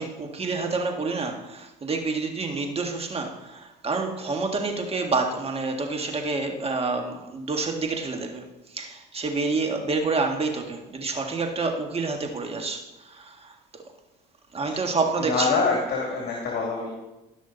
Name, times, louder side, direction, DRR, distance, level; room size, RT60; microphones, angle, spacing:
voice 1, 0.0-8.4 8.7-13.5 14.5-15.5, right 3 dB, 30° right, 3 dB, 1.8 m, -28 dB
voice 2, 15.1-16.9, left 4 dB, 50° left, -2 dB, 2.5 m, -25 dB
17.0 x 6.1 x 4.0 m, 1.0 s
supercardioid pair, 90°, 21 cm